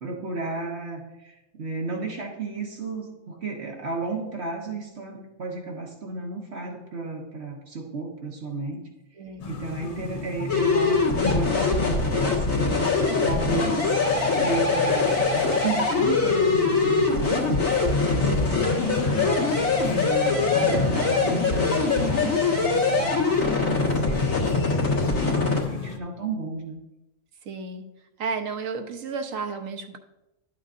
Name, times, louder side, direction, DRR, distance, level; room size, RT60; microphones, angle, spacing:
voice 1, 0.0-8.8 9.5-12.8 13.2-17.6 18.0-19.6 19.9-26.8, right 3 dB, 55° right, 1 dB, 1.3 m, -33 dB
voice 2, 9.2-9.5 18.2-18.7 27.4-27.8 28.2-30.0, right 5 dB, 75° right, 5 dB, 1.2 m, -32 dB
sound 1, 9.4-26.0, left 5 dB, 45° left, 0.5 m, -35 dB
sound 2, 10.5-25.6, left 4 dB, 80° left, 2.2 m, -23 dB
12.0 x 8.3 x 2.5 m, 0.95 s
omnidirectional pair, 1.4 m